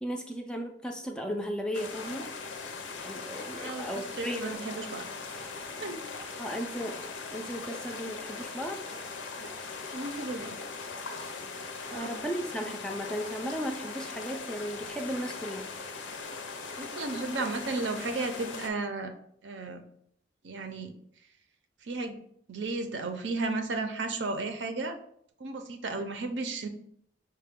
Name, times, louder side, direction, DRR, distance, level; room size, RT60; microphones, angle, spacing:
voice 1, 0.0-2.3 3.0-4.6 6.4-7.0 7.3-9.0 11.9-15.7, equal, 5° left, 3 dB, 0.3 m, -35 dB
sound 1, 1.7-18.7, left 4 dB, 85° left, 0.6 m, -40 dB
voice 2, 3.5-5.0 5.8-6.1 9.4-9.5 9.9-10.6 11.9-12.1 16.8-19.1 19.4-19.8 20.4-20.9 21.8-22.2 22.5-25.0 25.4-26.7, right 3 dB, 75° right, 6 dB, 0.6 m, -34 dB
5.5 x 2.2 x 3.5 m, 0.67 s
head